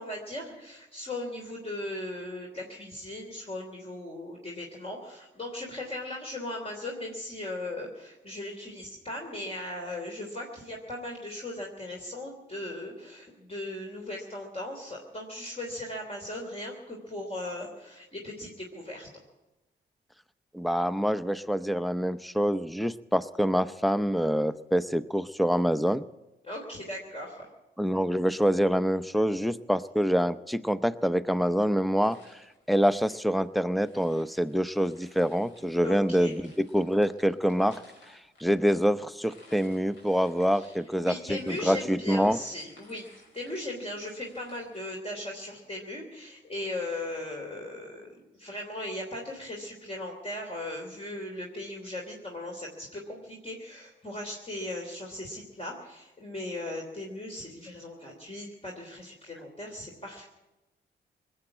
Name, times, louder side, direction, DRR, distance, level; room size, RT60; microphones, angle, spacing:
voice 1, 0.0-19.1 26.4-27.5 35.8-36.3 40.5-43.1 43.3-60.3, left 1 dB, 30° left, -1 dB, 3.2 m, -38 dB
voice 2, 20.5-26.0 27.8-32.4 32.7-37.8 38.1-42.4, equal, ahead, 14 dB, 0.7 m, -26 dB
sound 1, 32.0-45.0, left 2 dB, 65° left, 5.2 m, -59 dB
20.0 x 8.0 x 8.7 m, 1.0 s
supercardioid pair, 45°, 21 cm